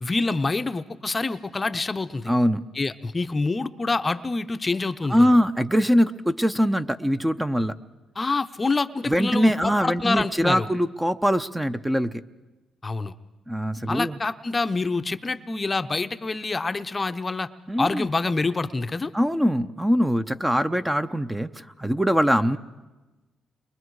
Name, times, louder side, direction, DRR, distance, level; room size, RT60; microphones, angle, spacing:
voice 1, 0.0-2.3 2.7-5.3 8.2-10.7 12.8-13.1 13.9-17.5 17.8-19.1, left 3 dB, 25° left, 10 dB, 0.7 m, -26 dB
voice 2, 2.3-2.6 5.1-7.7 9.1-12.2 13.5-14.2 17.7-18.1 19.1-22.6, equal, 5° right, 9 dB, 0.7 m, -22 dB
29.5 x 23.0 x 4.8 m, 1.1 s
cardioid pair, 90°, 0 cm